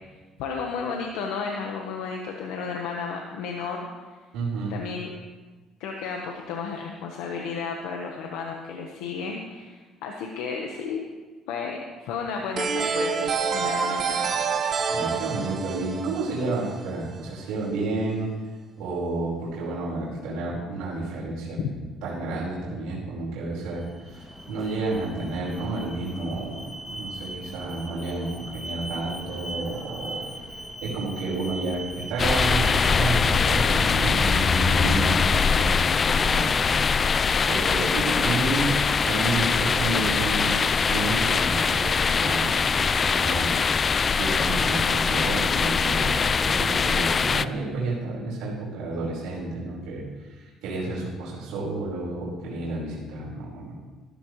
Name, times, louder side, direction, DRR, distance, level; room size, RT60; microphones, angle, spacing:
voice 1, 0.4-3.9 4.7-5.1 5.8-11.0 11.5-14.4 21.6-21.7 38.1-38.5, left 5 dB, 90° left, 1 dB, 1.2 m, -33 dB
voice 2, 4.3-4.8 14.9-18.3 18.8-21.6 22.0-30.2 30.8-38.7 39.0-50.0 50.3-53.7, right 3 dB, 85° right, -6 dB, 4.7 m, -31 dB
sound 1, 12.6-17.2, right 5 dB, 50° right, 1.3 m, -27 dB
Alarm, 23.6-35.7, right 1 dB, 5° left, 2.3 m, -40 dB
sound 2, 32.2-47.4, left 5 dB, 35° left, 0.4 m, -22 dB
15.0 x 13.5 x 3.2 m, 1.3 s
cardioid pair, 100°, 0 cm